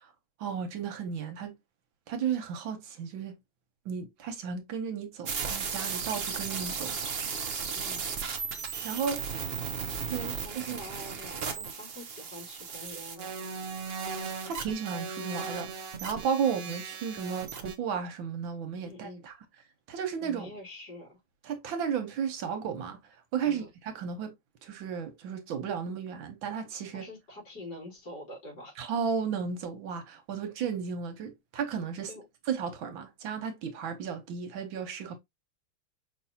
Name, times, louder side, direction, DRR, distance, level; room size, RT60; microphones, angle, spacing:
voice 1, 0.4-1.6 2.1-3.3 3.8-7.2 8.8-9.2 10.1-10.8 14.2-19.3 19.9-20.5 21.5-23.0 23.3-24.3 24.6-27.0 28.8-32.1 32.5-35.2, right 7 dB, 75° right, 1.7 m, -34 dB
sound 1, 5.2-17.7, right 6 dB, 60° right, 0.6 m, -36 dB
voice 2, 7.7-8.0 9.3-9.5 10.3-13.7 18.8-19.2 20.2-21.2 23.4-23.7 26.9-28.8 32.0-32.3, left 1 dB, 55° left, 3.5 m, -46 dB
5.4 x 3.2 x 2.8 m
omnidirectional pair, 2.1 m